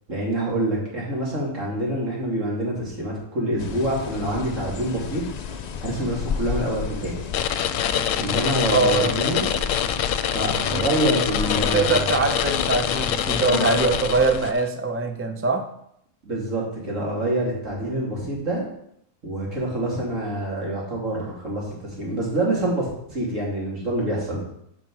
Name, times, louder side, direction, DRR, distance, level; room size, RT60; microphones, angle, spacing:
voice 1, 0.1-5.2 5.8-7.2 8.2-9.4 10.3-12.1 16.2-18.6 19.2-24.4, right 1 dB, 70° right, -4 dB, 3.0 m, -26 dB
sound 1, 3.6-14.5, left 6 dB, 60° left, 0.4 m, -32 dB
sound 2, 7.3-14.6, left 9 dB, 80° left, 1.0 m, -25 dB
voice 2, 8.7-9.2 10.7-10.8 11.7-15.6, right 3 dB, 15° right, 6 dB, 0.4 m, -22 dB
9.2 x 5.1 x 4.7 m, 0.73 s
omnidirectional pair, 1.3 m